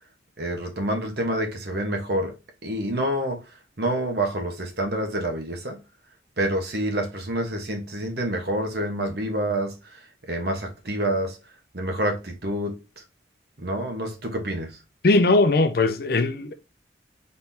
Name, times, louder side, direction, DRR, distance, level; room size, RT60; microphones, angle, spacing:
voice 1, 0.4-2.4 2.6-3.4 3.8-5.8 6.4-10.0 10.3-11.4 11.7-12.8 13.6-14.8, right 1 dB, 60° right, 1.1 m, -27 dB
voice 2, 15.0-16.5, left 2 dB, 55° left, 0.5 m, -19 dB
4.2 x 3.7 x 2.7 m
head